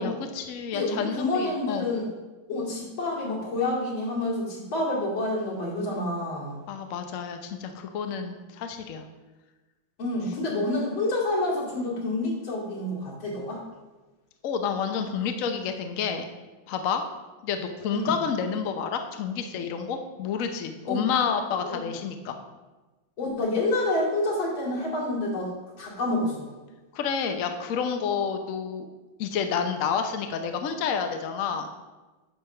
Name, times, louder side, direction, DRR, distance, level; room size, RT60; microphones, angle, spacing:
voice 1, 0.0-1.9 6.7-9.0 14.4-16.2 16.7-17.0 17.4-22.4 26.9-28.9 29.2-31.7, left 6 dB, 60° left, 6 dB, 0.8 m, -29 dB
voice 2, 0.7-2.1 2.5-6.6 10.0-13.6 17.9-18.1 20.9-21.0 23.2-25.5 25.8-26.5, left 2 dB, 80° left, -5 dB, 3.2 m, -28 dB
10.0 x 3.4 x 6.8 m, 1.2 s
omnidirectional pair, 2.1 m